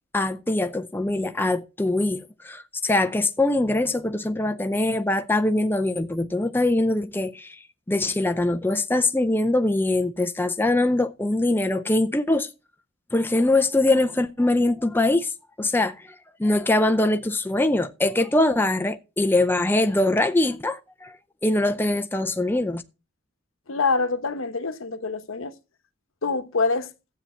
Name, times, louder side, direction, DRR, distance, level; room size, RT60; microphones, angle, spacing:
voice 1, 0.1-7.6 7.9-12.5 13.1-15.3 15.6-21.2 21.4-22.8, left 2 dB, 10° left, 0.5 m, -23 dB
voice 2, 23.7-25.5 26.2-26.9, left 4 dB, 75° left, 1.1 m, -25 dB
12.5 x 8.4 x 4.3 m
head